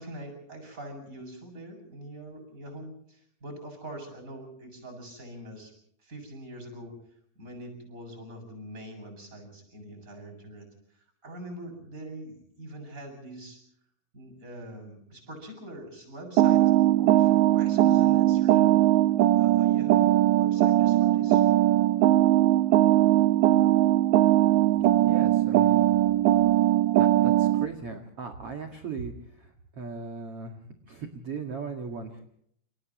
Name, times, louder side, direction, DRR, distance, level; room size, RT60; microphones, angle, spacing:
voice 1, 0.0-5.7 6.0-6.9 7.4-10.6 10.9-13.6 14.1-18.9 19.3-21.4, right 1 dB, 15° right, 4 dB, 7.6 m, -43 dB
sound 1, 16.4-27.7, right 13 dB, 75° right, 3.0 m, -20 dB
voice 2, 25.1-25.9 27.0-30.6 30.9-32.2, right 4 dB, 45° right, 4 dB, 2.1 m, -38 dB
30.0 x 29.5 x 3.1 m, 0.68 s
omnidirectional pair, 5.3 m